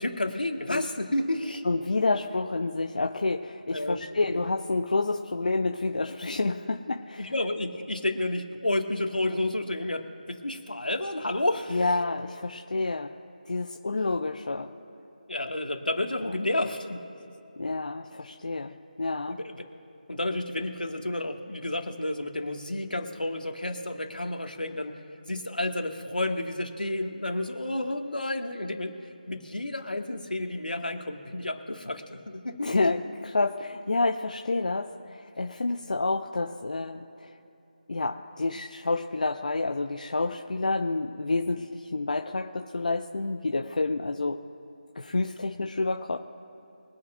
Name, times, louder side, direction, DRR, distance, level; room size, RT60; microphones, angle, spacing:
voice 1, 0.0-1.6 3.7-4.0 4.3-4.4 7.2-12.0 15.3-17.0 19.3-19.7 20.1-25.0 25.3-32.7, left 1 dB, 80° left, 3 dB, 2.0 m, -31 dB
voice 2, 1.6-7.3 11.7-13.1 13.5-14.7 16.2-16.3 17.6-19.4 32.6-37.3 37.9-44.4 45.0-46.2, left 3 dB, 60° left, 4 dB, 0.7 m, -29 dB
23.5 x 9.6 x 2.6 m, 2.9 s
figure-of-eight pair, 160°, 5 cm